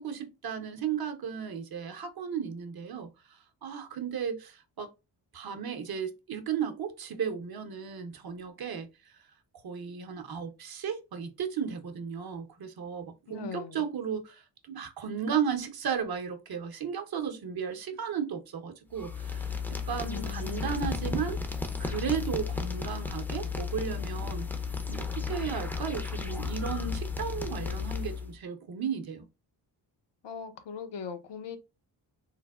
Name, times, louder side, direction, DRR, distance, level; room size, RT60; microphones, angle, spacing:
voice 1, 0.0-4.9 5.3-8.9 9.6-21.4 21.8-24.5 24.9-29.2, right 7 dB, 50° right, 0.7 m, -35 dB
voice 2, 13.3-13.9 20.1-21.2 30.2-31.6, left 6 dB, 65° left, 0.7 m, -41 dB
sound 1, 18.9-28.3, left 5 dB, 5° left, 0.5 m, -34 dB
3.3 x 2.0 x 2.3 m
cardioid pair, 60°, 46 cm